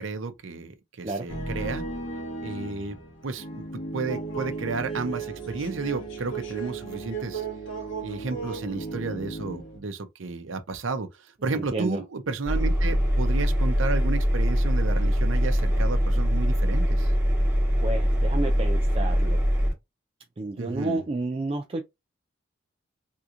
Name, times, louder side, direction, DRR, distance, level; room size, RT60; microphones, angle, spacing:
voice 1, 0.0-1.8 2.4-3.6 3.9-7.4 8.0-11.1 11.4-17.1 20.6-21.0, right 3 dB, 85° right, 0.6 m, -32 dB
sound 1, 1.3-9.8, right 3 dB, 80° left, 1.7 m, -35 dB
voice 2, 11.5-12.0 17.8-19.4 20.4-21.8, right 2 dB, 30° right, 0.4 m, -31 dB
Engine, 12.4-19.7, equal, 10° right, 1.1 m, -23 dB
3.6 x 2.9 x 2.5 m
head